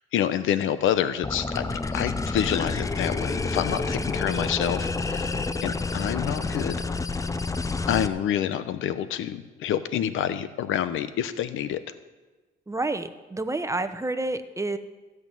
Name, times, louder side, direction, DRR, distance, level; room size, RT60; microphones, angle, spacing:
voice 1, 0.1-5.3 5.6-6.8 7.9-11.8, left 10 dB, 80° left, 12 dB, 0.9 m, -27 dB
sound 1, 1.2-8.1, left 3 dB, 15° left, 0.6 m, -29 dB
voice 2, 12.7-14.8, right 2 dB, 15° right, 10 dB, 0.9 m, -29 dB
16.0 x 6.1 x 9.1 m, 1.2 s
cardioid pair, 90°, 20 cm